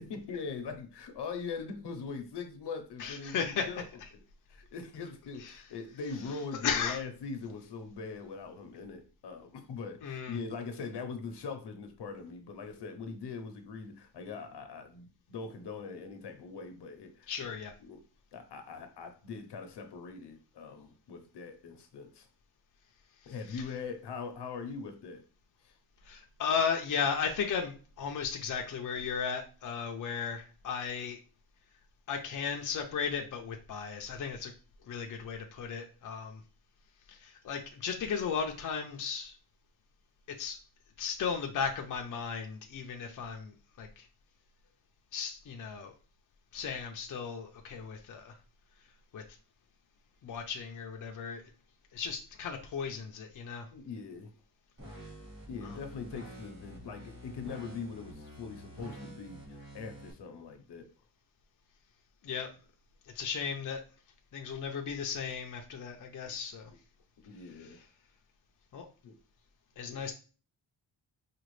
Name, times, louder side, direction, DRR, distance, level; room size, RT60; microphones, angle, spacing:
voice 1, 0.0-3.8 4.1-4.2 4.5-17.5 17.8-18.0 18.3-22.3 23.3-25.2 25.6-25.7 53.7-54.3 55.5-60.9 67.2-67.8 69.0-69.2 69.9-70.0, left 5 dB, 75° left, 6 dB, 0.8 m, -42 dB
voice 2, 3.0-3.7 5.4-5.5 6.6-7.0 10.0-10.4 17.3-17.7 23.5-23.6 26.0-31.2 32.1-34.5 34.9-36.4 37.1-39.4 40.4-40.6 41.0-44.1 45.1-45.9 46.5-48.3 49.1-49.2 50.2-51.4 51.9-53.7 55.6-55.8 62.2-62.5 63.1-63.8 64.3-66.7 67.6-67.8 68.7-68.9 69.8-70.1, left 6 dB, 50° left, 2 dB, 0.6 m, -35 dB
sound 1, 54.8-60.1, equal, 30° right, 1.9 m, -48 dB
5.0 x 2.4 x 3.1 m, 0.36 s
wide cardioid pair, 175°, 41 cm